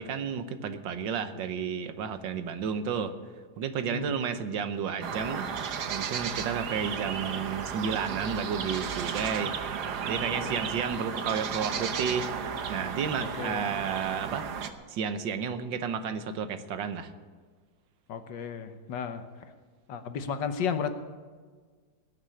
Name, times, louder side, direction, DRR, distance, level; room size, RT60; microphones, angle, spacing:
voice 1, 0.0-3.1 3.6-5.5 5.9-9.5 10.0-12.3 12.7-14.5 14.9-17.1, right 6 dB, 90° right, 10 dB, 1.7 m, -32 dB
voice 2, 3.8-4.1 10.3-10.5 13.4-13.7 18.1-19.3 19.9-21.0, left 6 dB, 80° left, 9 dB, 1.7 m, -33 dB
sound 1, 5.0-14.7, right 7 dB, 65° right, 1.5 m, -34 dB
20.0 x 6.6 x 10.0 m, 1.5 s
omnidirectional pair, 2.0 m